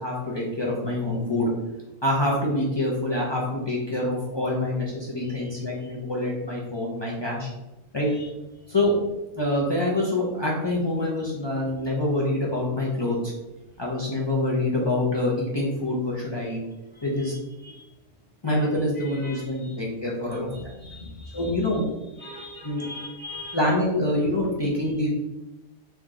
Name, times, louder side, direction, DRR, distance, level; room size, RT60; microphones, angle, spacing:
voice 1, 0.0-1.5 2.0-7.5 7.9-8.1 8.7-8.9 9.4-13.3 13.8-16.6 17.0-17.3 18.4-20.5 21.3-21.8 22.6-22.8 23.5-25.1, left 1 dB, 25° left, -5 dB, 0.7 m, -26 dB
voice 2, 5.2-5.9 8.1-8.3 16.9-17.9 18.4-18.7 18.9-19.8 20.3-21.8 22.2-23.6, left 2 dB, 45° right, -4 dB, 0.6 m, -42 dB
3.5 x 2.8 x 3.7 m, 0.99 s
omnidirectional pair, 1.3 m